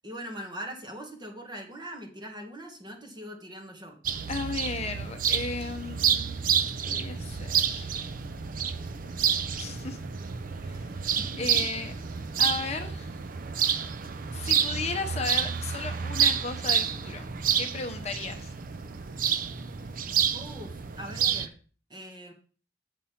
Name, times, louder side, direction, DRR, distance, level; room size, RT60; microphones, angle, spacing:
voice 1, 0.0-4.0 11.2-11.6 20.3-21.6 21.9-22.3, equal, 25° right, 2 dB, 1.5 m, -41 dB
sound 1, 4.0-21.5, right 8 dB, 45° right, 0.5 m, -29 dB
voice 2, 4.3-7.9 9.6-10.0 10.6-10.8 11.4-11.9 12.4-13.1 14.3-17.2 17.6-18.5, left 4 dB, 35° left, 6 dB, 0.8 m, -35 dB
sound 2, 5.6-20.3, left 1 dB, ahead, 2.5 m, -54 dB
7.5 x 5.4 x 5.8 m, 0.39 s
head